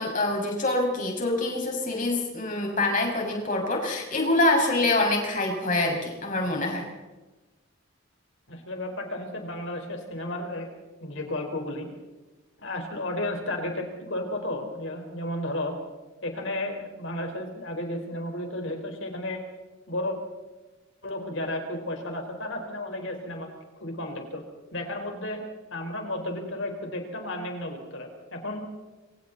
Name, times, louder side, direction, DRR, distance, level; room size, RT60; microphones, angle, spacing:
voice 1, 0.0-6.9, left 2 dB, 35° left, 1 dB, 6.0 m, -25 dB
voice 2, 8.5-10.7 11.0-11.9 12.6-15.7 16.2-19.4 19.9-20.2 21.0-23.5 23.8-24.4 24.7-25.4 25.7-28.6, left 1 dB, 60° left, 3 dB, 4.6 m, -33 dB
27.0 x 25.5 x 4.2 m, 1.2 s
head